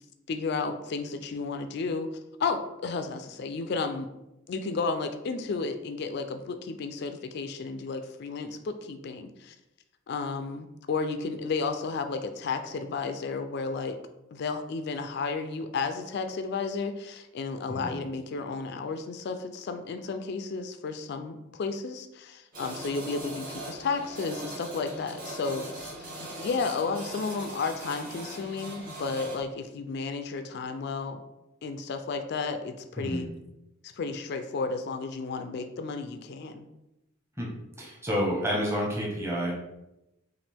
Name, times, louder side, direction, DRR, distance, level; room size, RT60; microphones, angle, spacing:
voice 1, 0.3-4.1 4.5-9.6 10.1-14.0 14.3-31.2 31.6-33.3 33.8-36.7, left 4 dB, 55° left, 8 dB, 0.3 m, -33 dB
sound 1, 22.5-29.4, right 1 dB, 45° right, 1.3 m, -40 dB
voice 2, 37.8-39.5, equal, 15° right, -3 dB, 0.9 m, -29 dB
5.8 x 2.4 x 3.4 m, 0.91 s
head